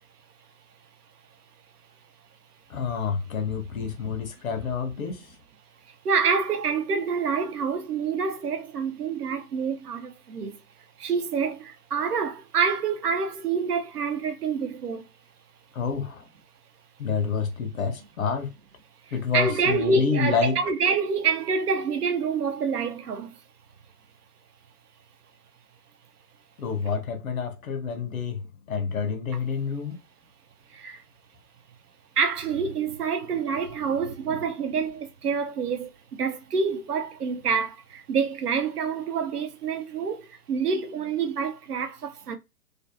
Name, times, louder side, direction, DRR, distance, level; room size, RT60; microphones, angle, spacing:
voice 1, 2.7-5.3 15.7-16.2 17.0-18.5 19.1-20.6 26.6-30.0, left 5 dB, 60° left, 0.7 m, -28 dB
voice 2, 6.0-10.6 11.0-15.0 19.3-23.4 30.7-31.0 32.2-35.9 36.2-42.4, right 5 dB, 70° right, 0.7 m, -27 dB
2.5 x 2.2 x 2.6 m
figure-of-eight pair, 120°, 48 cm